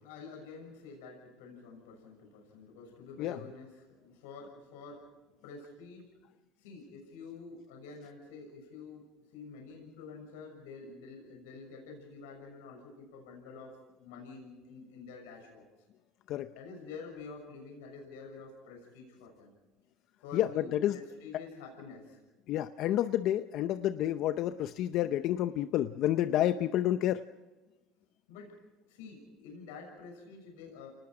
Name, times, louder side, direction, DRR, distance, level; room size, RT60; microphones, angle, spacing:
voice 1, 0.0-5.1 5.4-6.1 6.6-9.0 9.3-15.6 16.5-19.5 20.2-22.2 28.3-28.5 28.9-30.9, left 4 dB, 90° left, 1 dB, 6.5 m, -48 dB
voice 2, 20.3-21.0 22.5-27.2, left 12 dB, 60° left, 11 dB, 0.7 m, -29 dB
29.5 x 19.5 x 5.0 m, 1.2 s
supercardioid pair, 105°, 0 cm